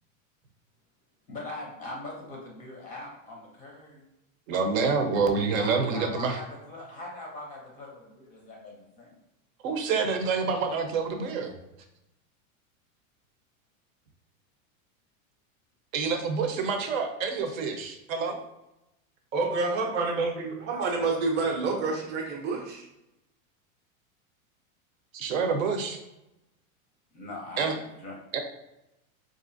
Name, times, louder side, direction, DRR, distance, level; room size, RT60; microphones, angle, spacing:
voice 1, 1.3-4.0 5.6-9.1 20.7-21.0 27.1-28.4, left 2 dB, 20° left, -1 dB, 0.5 m, -41 dB
voice 2, 4.5-6.4 9.6-11.5 15.9-18.4 25.1-26.0 27.6-27.7 28.3-28.4, right 5 dB, 75° right, 5 dB, 0.8 m, -27 dB
voice 3, 19.3-22.8, right 3 dB, 25° right, 0 dB, 0.6 m, -28 dB
4.2 x 2.5 x 2.6 m, 0.91 s
supercardioid pair, 145°, 41 cm